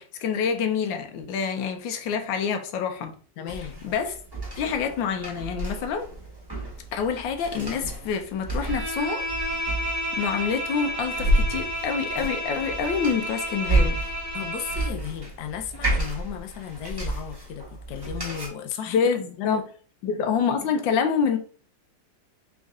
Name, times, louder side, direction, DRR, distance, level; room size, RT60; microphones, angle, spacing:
voice 1, 0.0-3.1 3.8-4.1 4.6-6.1 6.9-9.3 9.8-14.0 18.9-19.6 20.0-21.4, left 6 dB, 85° left, 1.4 m, -27 dB
voice 2, 3.4-3.8 14.3-19.0 19.4-19.6, left 9 dB, 70° left, 1.1 m, -34 dB
sound 1, 3.5-18.5, right 1 dB, 15° right, 0.9 m, -30 dB
Bowed string instrument, 8.6-15.0, equal, 70° right, 0.4 m, -31 dB
3.6 x 3.1 x 3.6 m
omnidirectional pair, 2.0 m